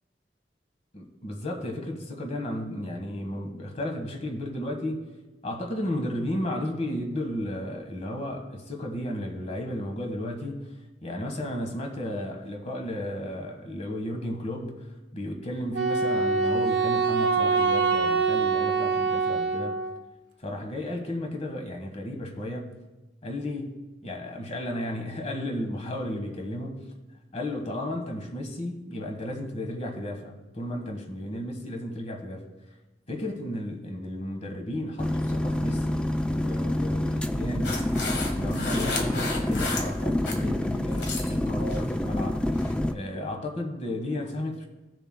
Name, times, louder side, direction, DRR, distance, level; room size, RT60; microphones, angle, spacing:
voice 1, 0.9-5.0 5.4-10.6 11.0-14.8 15.1-19.8 20.4-22.7 23.2-23.7 24.0-26.8 27.3-32.4 33.1-37.9 38.3-42.4 42.9-44.7, left 1 dB, 40° left, 3 dB, 1.3 m, -33 dB
Wind instrument woodwind instrument, 15.7-20.0, right 4 dB, 70° right, 0.7 m, -24 dB
sound 1, 35.0-42.9, left 1 dB, 5° left, 0.3 m, -27 dB
sound 2, 37.6-40.4 40.8-41.4 41.7-42.0 42.5-42.7, left 3 dB, 75° left, 1.4 m, -33 dB
16.5 x 6.7 x 2.2 m, 1.1 s
head